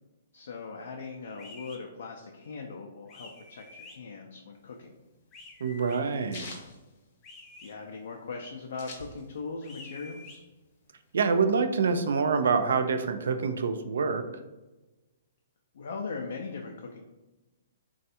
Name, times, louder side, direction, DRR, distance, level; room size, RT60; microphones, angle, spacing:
voice 1, 0.3-5.0 7.6-10.4 15.7-17.0, left 4 dB, 75° left, 1 dB, 0.4 m, -40 dB
sound 1, 1.4-1.8 3.1-4.0 5.3-6.0 7.2-7.7 9.6-10.4, left 3 dB, 20° left, 0.5 m, -48 dB
sound 2, 4.6-7.7 8.1-8.2 8.3-9.6 10.0-11.1, left 3 dB, 50° left, 0.8 m, -46 dB
voice 2, 5.6-6.5 11.1-14.2, right 5 dB, 80° right, 9 dB, 0.3 m, -26 dB
3.2 x 2.3 x 2.7 m, 1.1 s
hypercardioid pair, 140°, 0 cm